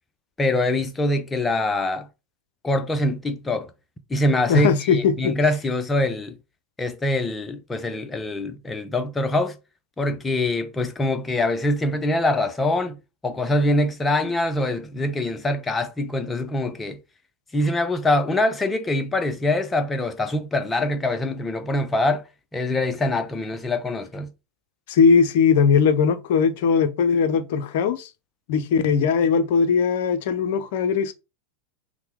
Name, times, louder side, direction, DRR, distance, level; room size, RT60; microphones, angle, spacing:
voice 1, 0.4-2.1 2.6-3.7 4.1-6.4 6.8-9.6 10.0-13.0 13.2-17.0 17.5-22.2 22.5-24.3, left 2 dB, 15° left, 0.7 m, -24 dB
voice 2, 4.5-5.4 24.9-28.1 28.5-31.1, left 6 dB, 50° left, 0.6 m, -19 dB
5.6 x 2.2 x 3.5 m
figure-of-eight pair, 90°, 0 cm